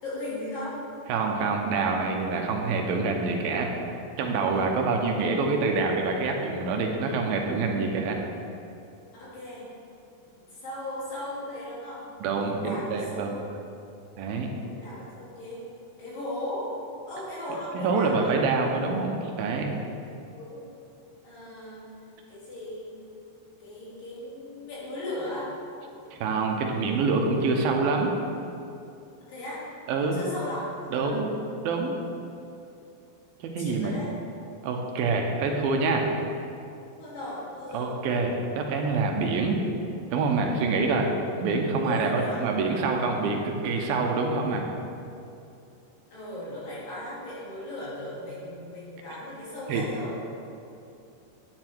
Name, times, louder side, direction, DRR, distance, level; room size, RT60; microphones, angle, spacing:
voice 1, 0.0-0.8 4.5-4.6 9.1-9.7 10.5-12.1 12.5-13.3 14.6-15.6 16.0-16.8 17.1-18.3 20.3-20.6 21.2-21.9 22.3-23.0 23.6-25.5 29.3-29.6 30.0-31.2 33.6-34.1 37.0-38.0 41.8-42.5 46.1-50.2, left 1 dB, 65° left, -8 dB, 4.4 m, -37 dB
voice 2, 1.1-3.7 4.2-8.2 12.2-13.3 14.2-14.5 17.7-19.7 26.2-28.1 29.9-30.2 30.9-31.3 31.6-32.0 33.5-33.9 34.6-36.1 37.7-39.6 40.1-41.1 41.4-44.7 49.7-49.8, right 4 dB, 80° right, 2 dB, 2.7 m, -26 dB
9.8 x 9.6 x 4.5 m, 2.7 s
omnidirectional pair, 4.3 m